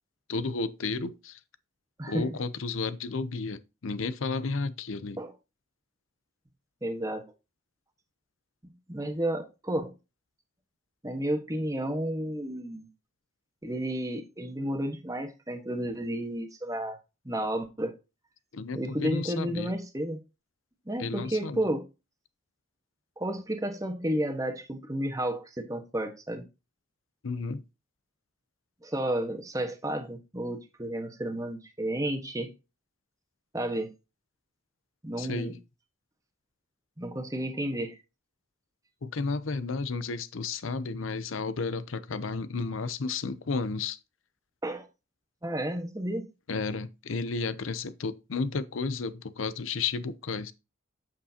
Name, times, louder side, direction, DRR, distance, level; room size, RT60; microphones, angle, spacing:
voice 1, 0.3-1.4 2.1-5.2 18.5-19.7 21.0-21.6 27.2-27.6 35.2-35.6 39.0-44.0 46.5-50.5, left 4 dB, 90° left, 0.7 m, -32 dB
voice 2, 2.0-2.4 5.2-5.3 6.8-7.2 8.9-9.9 11.0-12.9 13.6-17.0 17.2-18.0 18.7-20.2 20.9-21.8 23.2-26.5 28.8-32.5 33.5-33.9 35.0-35.6 37.0-38.0 44.6-44.9 45.4-46.3, right 1 dB, 15° right, 1.3 m, -32 dB
8.3 x 7.4 x 2.8 m
head